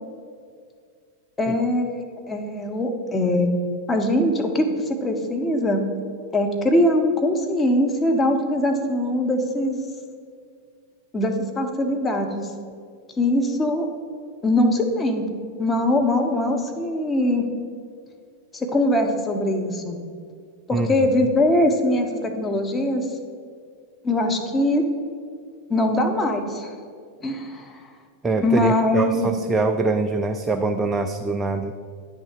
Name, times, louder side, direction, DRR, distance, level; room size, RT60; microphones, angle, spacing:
voice 1, 1.4-2.0 2.3-3.5 3.9-5.8 6.3-9.9 11.1-12.5 13.2-13.9 14.4-15.3 15.6-17.4 18.5-20.0 20.7-23.1 24.0-24.8 25.7-26.7 27.2-27.8 28.4-29.3, left 1 dB, 15° left, 4 dB, 0.8 m, -22 dB
voice 2, 28.2-31.7, right 3 dB, 15° right, 5 dB, 0.3 m, -24 dB
9.3 x 3.5 x 6.4 m, 2.1 s
figure-of-eight pair, 90°, 0 cm